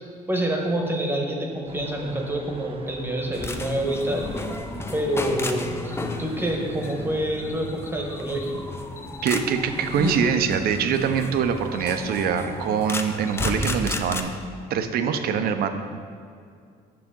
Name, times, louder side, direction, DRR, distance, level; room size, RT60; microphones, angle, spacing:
voice 1, 0.3-4.3 4.9-8.7, right 1 dB, 15° right, 1 dB, 1.0 m, -27 dB
sound 1, 1.7-7.3, right 2 dB, 30° right, 0.7 m, -43 dB
sound 2, 3.3-14.2, left 2 dB, 15° left, 0.5 m, -32 dB
voice 2, 9.2-14.3 14.7-15.7, right 7 dB, 65° right, 8 dB, 0.6 m, -24 dB
7.5 x 6.2 x 3.7 m, 2.3 s
cardioid pair, 110°, 17 cm